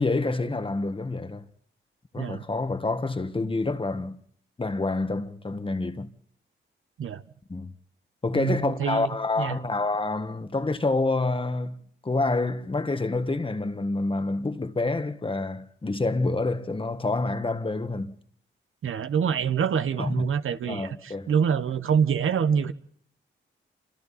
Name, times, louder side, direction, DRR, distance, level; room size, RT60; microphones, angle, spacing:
voice 1, 0.0-1.4 2.1-4.2 4.6-6.1 7.5-7.7 8.2-18.2 20.0-20.3 20.7-21.3, left 3 dB, 25° left, 1.5 m, -27 dB
voice 2, 8.3-9.1 9.4-9.6 18.8-22.7, right 7 dB, 75° right, 1.2 m, -26 dB
28.5 x 26.5 x 4.2 m
cardioid pair, 90°, 21 cm